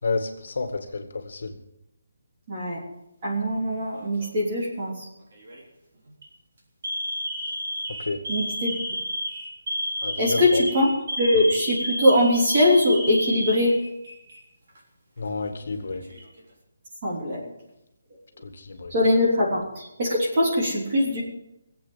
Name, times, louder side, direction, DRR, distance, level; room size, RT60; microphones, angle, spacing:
voice 1, 0.0-1.5 8.0-8.2 10.0-10.6 15.2-16.1 18.4-18.9, left 4 dB, 50° left, 6 dB, 2.1 m, -30 dB
voice 2, 2.5-2.8 3.2-5.1 8.3-8.8 10.2-10.9 11.2-13.7 17.0-17.5 18.9-21.2, left 1 dB, 25° right, -4 dB, 3.2 m, -22 dB
Alarm, 3.9-4.4 5.3-5.6 6.1-6.3 6.8-14.4 14.7-14.8 15.7-16.4, equal, 40° right, 3.4 m, -31 dB
19.5 x 8.4 x 7.6 m, 0.89 s
hypercardioid pair, 175°, 0 cm